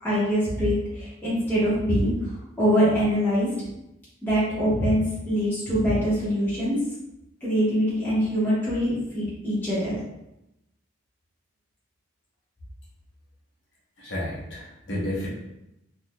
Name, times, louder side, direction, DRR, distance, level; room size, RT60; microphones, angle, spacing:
voice 1, 0.0-2.1 2.6-3.5 4.2-6.8 7.4-10.0, equal, 10° left, -11 dB, 1.2 m, -23 dB
voice 2, 14.0-15.3, left 1 dB, 65° left, -7 dB, 1.0 m, -31 dB
3.5 x 2.8 x 2.3 m, 0.88 s
head